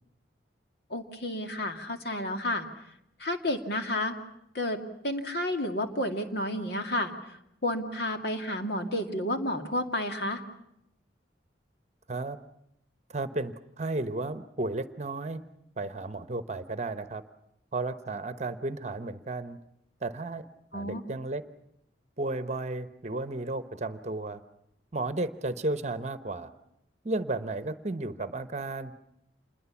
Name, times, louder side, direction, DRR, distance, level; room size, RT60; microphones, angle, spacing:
voice 1, 0.9-2.7 3.2-4.1 4.5-7.4 7.6-10.4 20.7-21.0, left 1 dB, 60° left, 5 dB, 2.4 m, -31 dB
voice 2, 13.1-15.4 15.8-17.2 17.7-19.6 20.0-20.4 20.7-21.4 22.2-24.4 24.9-26.5 27.0-29.0, right 2 dB, 35° right, 12 dB, 1.0 m, -33 dB
27.5 x 21.5 x 7.2 m, 0.80 s
head